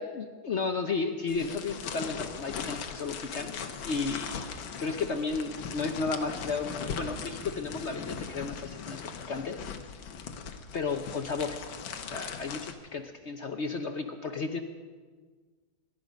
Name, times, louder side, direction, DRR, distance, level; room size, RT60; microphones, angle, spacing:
voice 1, 0.0-9.6 10.7-11.6 12.0-14.6, left 4 dB, 55° left, 6 dB, 0.7 m, -33 dB
sound 1, 1.3-12.7, left 6 dB, 75° left, 1.8 m, -39 dB
23.5 x 11.5 x 5.2 m, 1.5 s
omnidirectional pair, 2.1 m